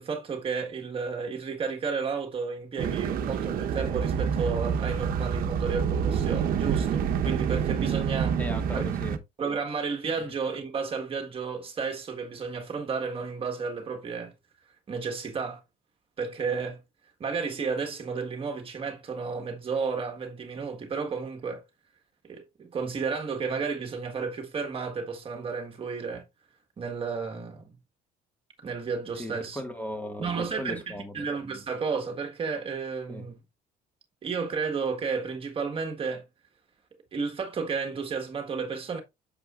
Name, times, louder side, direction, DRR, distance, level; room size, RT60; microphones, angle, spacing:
voice 1, 0.0-8.4 8.7-8.8 9.4-14.3 14.9-15.6 16.2-16.8 17.2-21.6 22.2-26.2 26.8-27.7 28.6-29.6 30.2-33.4 34.2-36.2 37.1-39.0, right 5 dB, 35° right, 1.6 m, -32 dB
sound 1, 2.8-9.2, right 7 dB, 60° right, 1.1 m, -27 dB
voice 2, 8.4-9.2 10.0-10.3 29.2-31.3 33.1-33.2, equal, 10° left, 1.8 m, -37 dB
8.7 x 7.1 x 2.5 m
cardioid pair, 130°, 17 cm